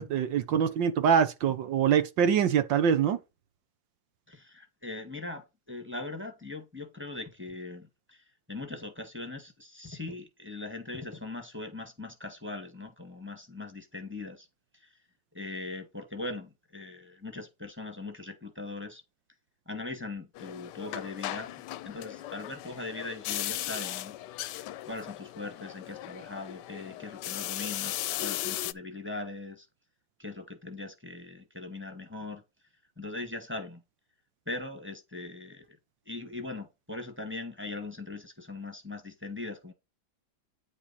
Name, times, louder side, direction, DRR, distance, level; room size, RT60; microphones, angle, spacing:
voice 1, 0.0-3.2, right 8 dB, 80° right, 1.7 m, -24 dB
voice 2, 4.3-14.5 14.7-14.9 15.3-19.0 19.7-21.5 21.8-24.2 24.9-29.7 30.2-32.4 33.0-33.8 34.5-35.8 36.1-39.7, left 2 dB, 5° right, 1.8 m, -40 dB
sound 1, 20.4-28.7, left 14 dB, 75° left, 1.2 m, -37 dB
9.9 x 5.1 x 4.2 m
omnidirectional pair, 2.0 m